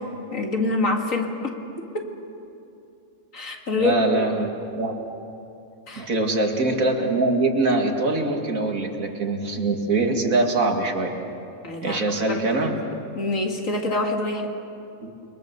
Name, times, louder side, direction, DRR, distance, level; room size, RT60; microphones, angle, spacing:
voice 1, 0.3-1.5 1.8-2.1 3.3-4.3 5.9-6.1 11.6-14.5, left 2 dB, 65° left, 2 dB, 2.5 m, -26 dB
voice 2, 3.7-4.5 4.8-4.9 5.9-11.1 11.8-12.7 15.0-15.1, right 2 dB, 70° right, 2 dB, 2.6 m, -23 dB
29.5 x 22.5 x 6.9 m, 2.7 s
omnidirectional pair, 1.5 m